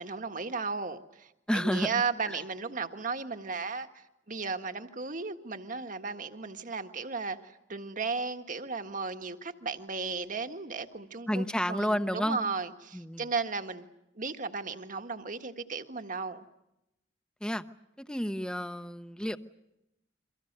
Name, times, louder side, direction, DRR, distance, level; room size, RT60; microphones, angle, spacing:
voice 1, 0.0-13.9 14.1-16.4, right 4 dB, 50° right, 1.7 m, -35 dB
voice 2, 1.5-2.4 11.3-12.4 12.9-13.3 17.4-17.6 18.0-19.4, equal, 5° left, 0.9 m, -31 dB
29.5 x 24.5 x 6.7 m
head